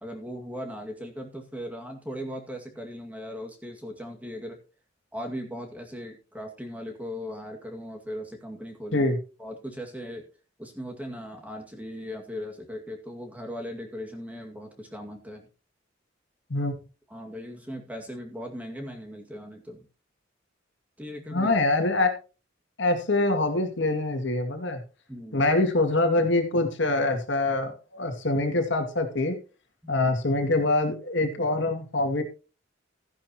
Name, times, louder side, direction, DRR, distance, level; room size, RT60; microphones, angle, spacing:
voice 1, 0.0-4.6 5.1-9.0 9.4-10.2 10.6-15.5 17.1-19.9 21.0-21.5 25.1-25.5 29.8-29.9, equal, 10° right, 2 dB, 2.1 m, -38 dB
voice 2, 21.3-22.1 22.8-24.8 25.3-29.4 29.9-32.2, left 2 dB, 65° left, 4 dB, 2.4 m, -24 dB
14.5 x 10.5 x 3.0 m, 0.33 s
head